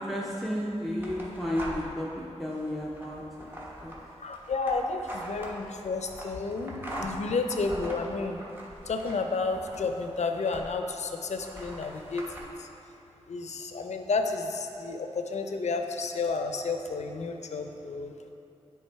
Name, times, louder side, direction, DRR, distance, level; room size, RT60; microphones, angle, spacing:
voice 1, 0.0-3.5 3.8-3.9, equal, ahead, -4 dB, 0.6 m, -33 dB
sound 1, 1.0-2.1 2.5-10.9 11.4-12.4, right 1 dB, 20° right, 1.1 m, -42 dB
voice 2, 4.2-8.4 8.9-12.7 13.3-18.1, left 3 dB, 80° left, 5 dB, 0.5 m, -31 dB
9.6 x 3.4 x 4.5 m, 2.8 s
wide cardioid pair, 100°, 11 cm